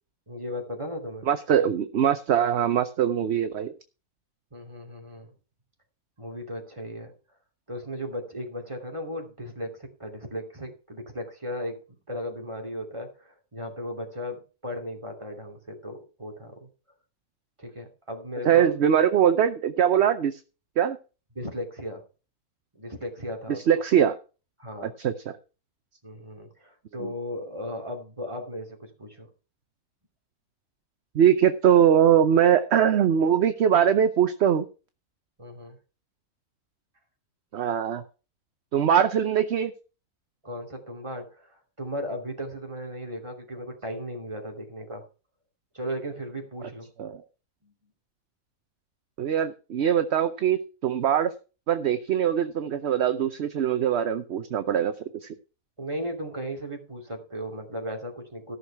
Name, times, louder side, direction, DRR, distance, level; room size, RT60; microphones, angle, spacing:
voice 1, 0.3-1.3 4.5-5.3 6.2-7.1 7.7-11.8 12.1-16.7 17.6-18.7 21.3-22.0 22.7-23.6 24.6-24.9 26.0-29.3 35.4-35.8 40.4-45.0 45.7-46.9 47.6-47.7 55.8-58.6, equal, 20° right, 1 dB, 2.9 m, -36 dB
voice 2, 1.3-3.7 18.4-20.4 20.8-21.0 23.7-24.2 24.8-25.4 31.1-34.7 37.5-38.0 38.7-39.7 47.0-47.2 49.2-51.3 51.7-54.9 55.2-55.3, right 9 dB, 55° right, 10 dB, 0.9 m, -22 dB
14.5 x 6.4 x 5.8 m, 0.34 s
omnidirectional pair, 1.6 m